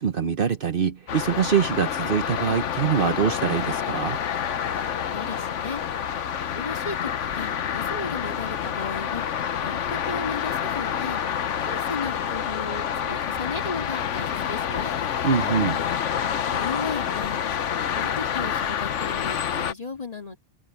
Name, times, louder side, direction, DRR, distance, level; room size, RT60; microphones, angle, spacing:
voice 1, 0.0-4.2 15.2-15.8, right 7 dB, 55° right, 0.9 m, -24 dB
sound 1, 1.1-19.7, left 8 dB, 90° left, 1.2 m, -28 dB
voice 2, 5.1-5.8 6.6-9.3 9.6-11.2 11.7-14.9 16.5-17.4 18.0-20.4, left 4 dB, 30° left, 2.4 m, -35 dB
omnidirectional pair, 1.2 m